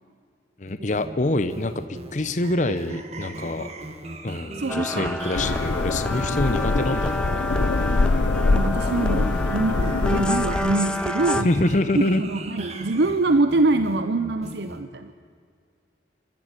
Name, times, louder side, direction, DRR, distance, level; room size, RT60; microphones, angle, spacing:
voice 1, 0.6-3.7 4.2-7.4 11.4-12.2, left 2 dB, 40° left, 11 dB, 0.8 m, -25 dB
sound 1, 0.7-14.8, right 2 dB, 35° right, 1.5 m, -38 dB
voice 2, 4.6-5.1 8.5-11.5 11.9-15.1, right 2 dB, 70° right, 9 dB, 0.7 m, -24 dB
sound 2, 4.7-11.4, left 1 dB, 5° left, 0.5 m, -30 dB
sound 3, 5.3-10.9, left 3 dB, 80° left, 0.6 m, -24 dB
26.0 x 13.0 x 9.1 m, 2.3 s
head